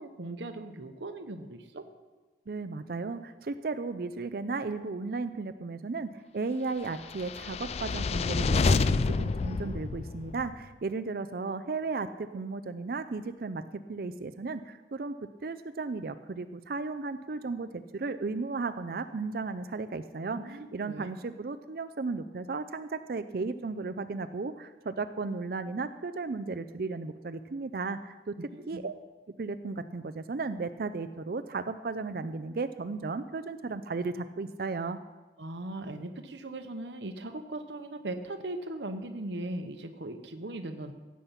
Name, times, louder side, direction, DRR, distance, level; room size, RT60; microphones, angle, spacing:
voice 1, 0.0-1.8 20.3-21.1 28.5-28.8 35.4-40.9, right 2 dB, 80° right, 7 dB, 1.0 m, -39 dB
voice 2, 2.5-15.2 15.4-28.3 28.7-28.9 29.4-35.0, right 3 dB, 55° right, 10 dB, 0.5 m, -35 dB
sound 1, 7.1-10.5, left 4 dB, 35° left, 0.3 m, -28 dB
15.5 x 8.5 x 5.8 m, 1.2 s
head